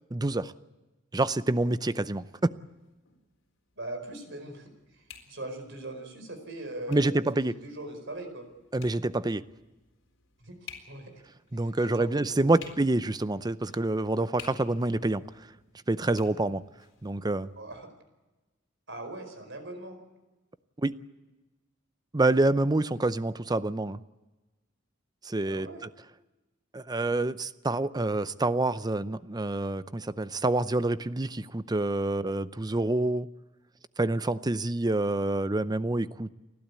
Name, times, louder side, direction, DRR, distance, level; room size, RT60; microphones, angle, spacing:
voice 1, 0.1-0.5 1.1-2.5 6.9-7.6 8.7-9.4 11.5-15.2 15.9-16.6 17.0-17.5 20.8-20.9 22.1-24.0 25.2-25.7 26.7-33.3 34.0-36.3, right 2 dB, 20° right, 15 dB, 0.6 m, -27 dB
sound 1, 2.6-17.8, left 7 dB, 75° left, 4.1 m, -54 dB
voice 2, 3.8-4.7 5.3-7.1 7.4-8.5 10.4-10.6 10.9-11.1 11.6-12.6 17.5-17.9 18.9-20.0 25.4-25.8, right 1 dB, 65° right, 7 dB, 4.8 m, -40 dB
30.0 x 12.0 x 8.4 m, 1.1 s
head